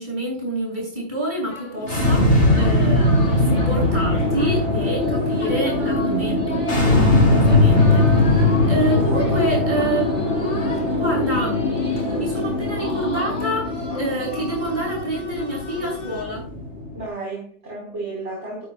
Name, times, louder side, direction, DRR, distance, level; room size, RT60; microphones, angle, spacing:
voice 1, 0.0-6.7 7.3-10.3 10.9-16.5, right 1 dB, 40° right, -2 dB, 7.2 m, -27 dB
sound 1, 1.5-16.2, left 3 dB, 85° left, 3.6 m, -38 dB
sound 2, 1.8-17.0, left 2 dB, 55° left, 2.7 m, -20 dB
voice 2, 7.4-8.0 8.9-9.4 16.9-18.7, right 2 dB, 80° right, -5 dB, 5.4 m, -33 dB
13.0 x 12.0 x 2.4 m, 0.41 s
omnidirectional pair, 1.2 m